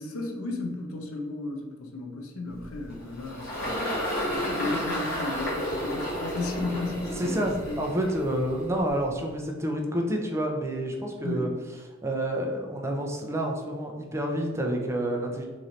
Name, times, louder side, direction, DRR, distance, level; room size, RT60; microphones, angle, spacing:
voice 1, 0.0-7.8 11.2-11.5, left 2 dB, 85° left, 3 dB, 0.6 m, -34 dB
Engine, 2.6-9.2, equal, 45° left, 1.4 m, -32 dB
voice 2, 7.2-11.5 12.0-15.5, right 1 dB, 15° right, 1 dB, 0.4 m, -29 dB
3.1 x 2.6 x 3.9 m, 1.4 s
head